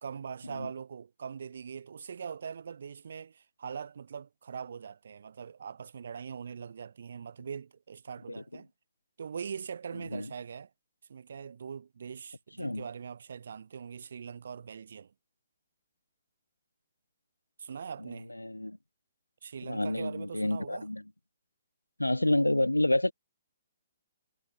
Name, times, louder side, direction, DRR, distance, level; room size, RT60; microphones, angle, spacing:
voice 1, 0.0-8.7 9.2-10.7 11.1-15.1 17.6-18.3 19.4-20.9, right 6 dB, 60° right, 1.8 m, -42 dB
voice 2, 18.4-18.8 19.6-21.0 22.0-23.1, left 1 dB, 90° left, 0.5 m, -28 dB
figure-of-eight pair, 130°, 0 cm